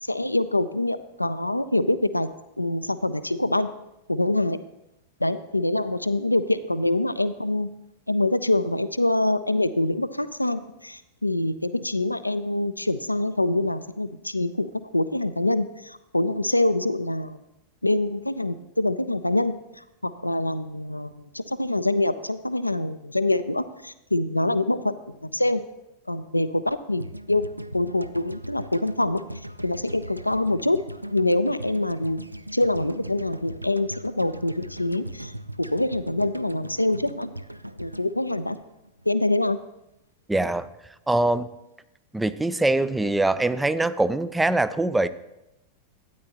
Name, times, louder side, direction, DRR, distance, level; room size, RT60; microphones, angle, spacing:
voice 1, 0.0-2.3 2.6-3.7 4.1-4.6 5.2-7.7 8.1-17.4 17.8-25.6 26.1-27.4 27.7-29.2 29.6-30.8 31.1-32.2 32.5-35.3 35.7-37.3 37.8-38.6 39.1-39.6, left 2 dB, 85° left, 13 dB, 0.4 m, -25 dB
sound 1, 27.0-39.2, equal, 85° right, 0.3 m, -39 dB
voice 2, 40.3-40.7 41.1-41.5 42.1-45.1, right 2 dB, 5° right, 14 dB, 0.4 m, -23 dB
12.5 x 9.5 x 2.9 m, 0.90 s
figure-of-eight pair, 90°, 0 cm